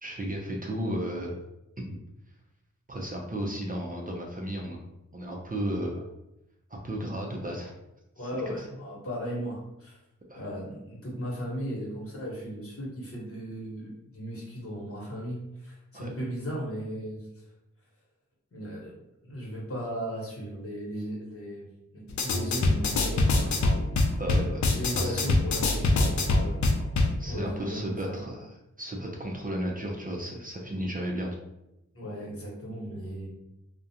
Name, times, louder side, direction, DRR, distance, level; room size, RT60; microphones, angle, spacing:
voice 1, 0.0-1.3 1.8-2.0 2.9-4.8 5.1-6.0 6.8-7.7 8.5-8.7 10.3-10.4 15.9-16.1 24.2-24.7 24.9-25.3 25.7-25.8 27.2-28.5 28.8-31.3, right 1 dB, 30° right, -1 dB, 0.5 m, -34 dB
voice 2, 8.2-10.0 10.3-17.4 18.5-18.9 19.2-21.7 21.9-23.6 24.0-24.2 24.7-26.7 27.2-28.1 31.9-33.3, equal, 45° left, -5 dB, 1.1 m, -36 dB
sound 1, 22.1-27.1, left 2 dB, 65° left, 0.5 m, -24 dB
2.4 x 2.1 x 2.8 m, 0.91 s
cardioid pair, 45°, 31 cm